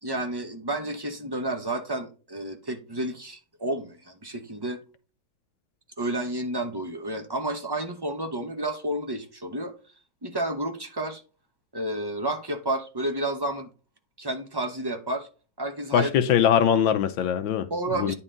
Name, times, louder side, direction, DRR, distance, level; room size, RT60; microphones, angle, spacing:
voice 1, 0.0-4.8 6.0-9.7 10.2-11.2 11.7-13.7 14.2-15.3 15.6-16.1 17.7-18.1, right 1 dB, 40° right, 0.3 m, -31 dB
voice 2, 15.9-17.7 17.9-18.1, left 9 dB, 75° left, 1.4 m, -22 dB
9.8 x 4.2 x 3.8 m
omnidirectional pair, 2.1 m